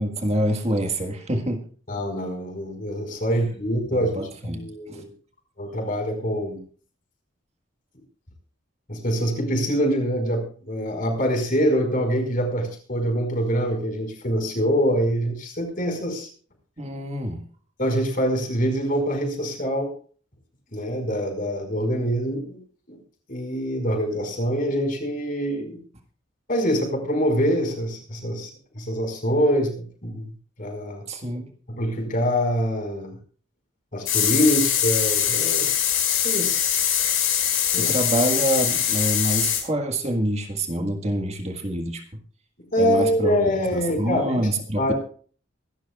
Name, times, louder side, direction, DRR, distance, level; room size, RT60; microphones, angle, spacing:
voice 1, 0.0-1.6 3.9-5.0 16.8-17.4 31.1-31.5 37.8-42.0 42.8-43.5 43.7-44.9, right 1 dB, 30° right, 4 dB, 1.7 m, -26 dB
voice 2, 1.9-4.1 4.4-5.1 5.6-6.6 8.9-16.3 17.8-19.9 20.7-22.6 22.9-23.0 23.3-25.8 26.5-28.5 28.7-30.2 30.6-31.0 31.7-33.2 33.9-35.8 36.2-36.9 37.7-37.9 42.7-44.3 44.8-44.9, equal, 45° left, 3 dB, 5.2 m, -24 dB
sound 1, 34.0-39.6, left 9 dB, 80° left, 5.8 m, -22 dB
25.0 x 12.5 x 2.4 m, 0.42 s
head